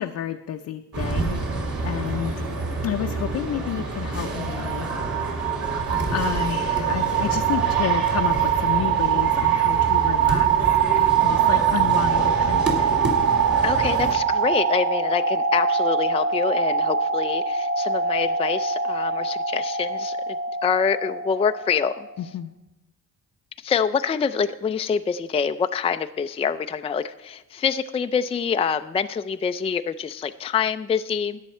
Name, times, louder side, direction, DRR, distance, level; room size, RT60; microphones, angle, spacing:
voice 1, 0.0-2.4 2.8-4.9 6.1-10.5 11.2-13.0 22.2-22.5, left 10 dB, 60° left, 4 dB, 0.6 m, -30 dB
sound 1, 0.9-14.1, right 2 dB, 50° right, 2.9 m, -28 dB
sound 2, 4.3-22.1, right 7 dB, 30° right, 1.5 m, -23 dB
voice 2, 13.6-20.4 20.6-22.1 23.6-31.4, left 6 dB, 20° left, 9 dB, 0.4 m, -26 dB
13.5 x 9.3 x 4.4 m, 1.0 s
cardioid pair, 90°, 30 cm